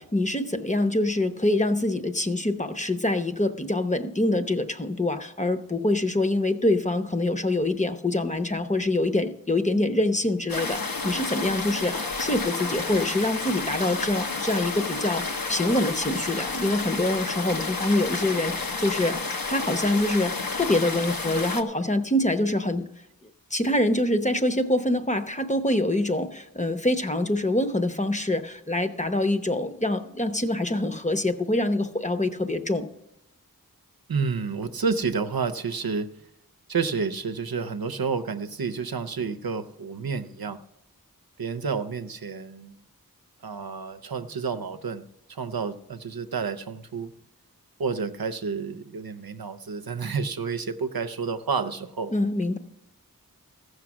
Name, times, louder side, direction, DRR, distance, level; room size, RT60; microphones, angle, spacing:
voice 1, 0.0-19.2 19.5-22.9 23.5-32.9 52.1-52.6, left 1 dB, 20° left, 8 dB, 0.8 m, -25 dB
sound 1, 10.5-21.6, left 3 dB, 75° left, 0.9 m, -31 dB
voice 2, 34.1-36.1 36.7-40.6 41.4-42.8 43.4-47.1 47.8-52.1, right 5 dB, 85° right, 10 dB, 0.7 m, -30 dB
15.0 x 6.5 x 6.1 m, 0.87 s
wide cardioid pair, 45°, 35 cm